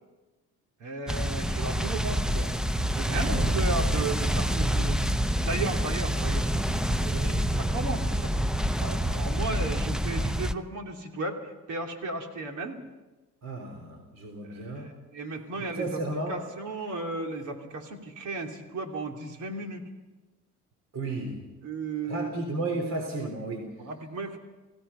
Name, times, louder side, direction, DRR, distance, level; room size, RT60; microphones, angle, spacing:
voice 1, 0.8-2.5 2.9-5.0 5.4-8.3 8.8-12.8 14.4-16.0 16.3-19.9 21.6-22.7 23.2-23.3 23.8-24.4, right 3 dB, 80° right, 3 dB, 3.1 m, -35 dB
sound 1, 1.1-10.5, equal, ahead, 0.6 m, -27 dB
voice 2, 3.1-3.6 5.6-5.7 7.1-7.4 13.4-14.9 15.6-16.4 20.9-21.4 22.1-23.7, right 2 dB, 55° right, 3 dB, 3.8 m, -34 dB
29.0 x 16.5 x 5.7 m, 1.1 s
cardioid pair, 90°, 30 cm